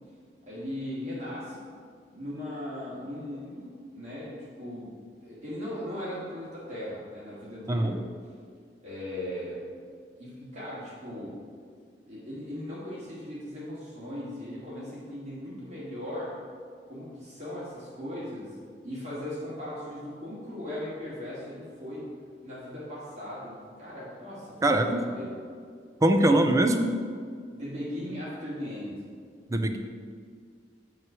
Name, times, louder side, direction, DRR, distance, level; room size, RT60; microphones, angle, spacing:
voice 1, 0.5-1.6 2.1-4.9 5.2-8.0 8.8-9.6 10.2-11.4 12.1-16.3 16.9-18.6 18.8-22.0 22.4-24.9 25.1-25.4 27.6-29.0, left 1 dB, 40° right, -8 dB, 1.8 m, -38 dB
voice 2, 7.7-8.0 24.6-25.0 26.0-26.9 29.5-29.8, right 1 dB, 20° right, 6 dB, 0.4 m, -22 dB
7.6 x 3.2 x 6.2 m, 2.1 s
head